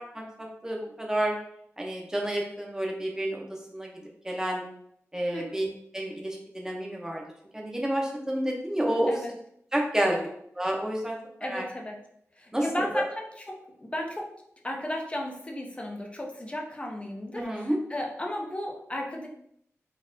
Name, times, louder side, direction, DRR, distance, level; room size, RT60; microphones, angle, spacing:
voice 1, 0.1-1.4 1.8-4.7 5.1-5.7 5.9-7.2 7.5-9.1 9.7-10.2 10.6-11.6 12.5-13.0 17.3-17.8, right 1 dB, 10° right, -1 dB, 0.9 m, -30 dB
voice 2, 11.4-12.0 12.4-14.3 14.6-19.3, left 1 dB, 20° left, 0 dB, 0.7 m, -35 dB
4.2 x 2.6 x 2.7 m, 0.71 s
wide cardioid pair, 75°, 5 cm